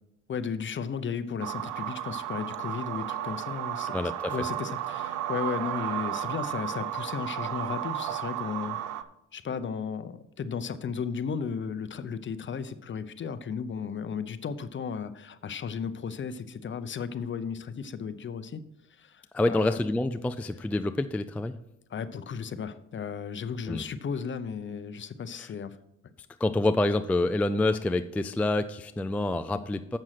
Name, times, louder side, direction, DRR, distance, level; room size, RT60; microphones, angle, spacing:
voice 1, 0.3-9.0 9.3-18.6 19.0-19.8 21.9-25.8, left 6 dB, 40° left, 12 dB, 0.7 m, -35 dB
sound 1, 1.4-9.0, right 11 dB, 85° right, 0.6 m, -33 dB
voice 2, 3.9-4.4 19.3-21.6 23.7-23.8 25.4-25.5 26.4-30.0, left 2 dB, 5° left, 10 dB, 0.3 m, -27 dB
7.7 x 6.1 x 5.8 m, 0.85 s
cardioid pair, 90°, 30 cm